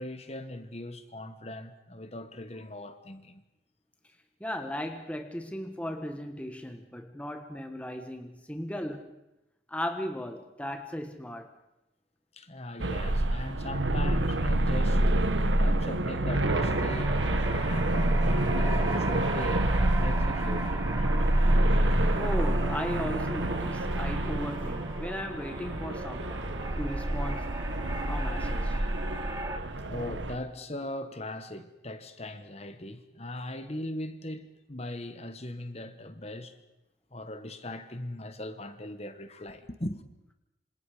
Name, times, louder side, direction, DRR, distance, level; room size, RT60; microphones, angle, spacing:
voice 1, 0.0-3.4 12.3-15.0 15.6-21.2 29.8-36.6 37.1-40.0, left 1 dB, 35° left, 1.5 m, -39 dB
voice 2, 4.4-9.1 9.7-11.5 22.1-26.4 26.8-27.5 28.1-28.8, equal, 5° left, 1.3 m, -36 dB
sound 1, 12.8-30.4, right 1 dB, 85° right, 1.3 m, -27 dB
sound 2, 16.4-29.6, right 1 dB, 15° right, 1.5 m, -37 dB
27.0 x 26.5 x 5.1 m
head